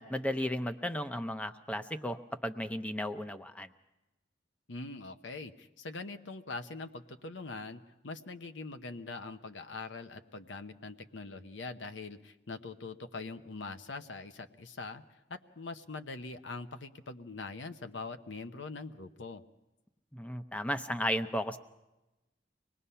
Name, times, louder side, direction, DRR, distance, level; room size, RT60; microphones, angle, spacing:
voice 1, 0.0-3.7 20.1-21.6, equal, 5° left, 9 dB, 0.7 m, -34 dB
voice 2, 4.7-19.4, left 3 dB, 85° left, 8 dB, 1.0 m, -43 dB
25.0 x 19.5 x 5.6 m, 1.0 s
head